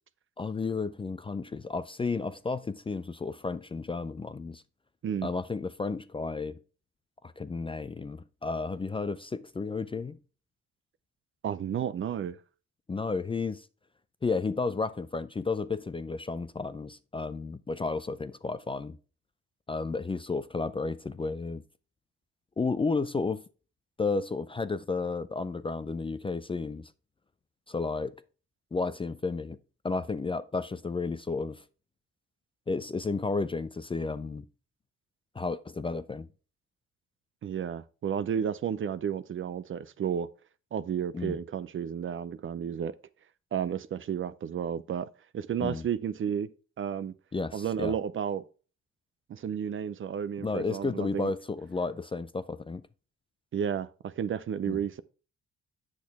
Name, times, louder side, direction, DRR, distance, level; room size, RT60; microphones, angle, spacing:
voice 1, 0.4-4.6 5.2-6.6 7.2-10.2 12.9-13.7 14.2-19.0 19.7-21.6 22.6-23.4 24.0-26.9 27.7-28.2 28.7-29.6 29.8-31.6 32.7-34.5 35.3-36.3 41.1-41.4 45.6-45.8 47.3-48.0 50.4-52.8 54.7-54.8, left 4 dB, 20° left, 0.4 m, -32 dB
voice 2, 11.4-12.4 37.4-40.3 40.7-43.0 43.5-45.1 45.3-46.5 46.8-47.1 47.5-48.4 49.3-51.3 53.5-55.0, right 8 dB, 45° right, 0.5 m, -32 dB
8.2 x 6.4 x 3.5 m
cardioid pair, 90°, 30 cm